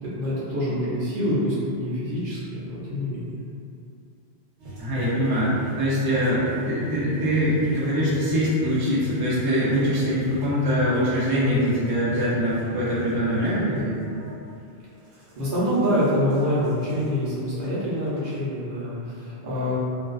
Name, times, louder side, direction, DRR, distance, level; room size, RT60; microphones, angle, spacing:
voice 1, 0.0-3.4 15.0-19.8, equal, 55° right, -9 dB, 0.8 m, -26 dB
sound 1, 4.6-14.4 15.1-17.0 17.6-17.7 17.9-18.3, equal, 85° right, 0.9 m, -38 dB
voice 2, 4.8-14.0, equal, 30° right, -9 dB, 0.4 m, -23 dB
2.5 x 2.2 x 2.3 m, 2.5 s
omnidirectional pair, 1.1 m